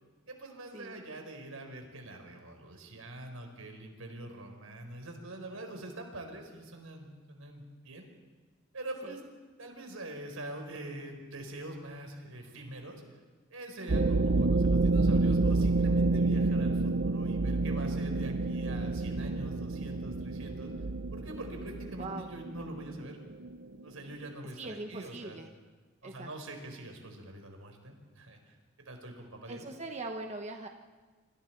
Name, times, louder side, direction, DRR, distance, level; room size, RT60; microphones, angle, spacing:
voice 1, 0.3-8.1 8.7-9.2 9.6-13.0 13.5-20.7 21.1-23.2 23.8-25.4 26.0-28.6 28.8-29.6, right 1 dB, 85° right, 4 dB, 4.5 m, -44 dB
sound 1, 13.9-24.1, right 3 dB, 55° right, 0.7 m, -29 dB
voice 2, 22.0-22.3 24.6-25.5 26.0-26.3 29.5-30.7, right 2 dB, 35° right, 3 dB, 1.1 m, -41 dB
26.5 x 26.0 x 4.6 m, 1.4 s
head